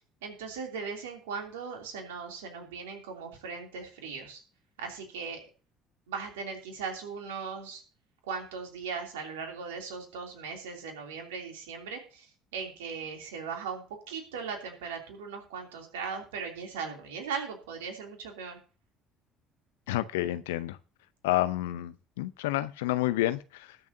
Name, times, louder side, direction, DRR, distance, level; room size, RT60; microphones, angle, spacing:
voice 1, 0.2-4.4 4.8-5.5 6.1-7.8 8.2-18.6, right 5 dB, 75° right, 2 dB, 2.9 m, -38 dB
voice 2, 19.9-20.8 21.2-23.8, left 15 dB, 75° left, 14 dB, 0.7 m, -29 dB
20.0 x 7.1 x 2.7 m, 0.37 s
figure-of-eight pair, 55°, 0 cm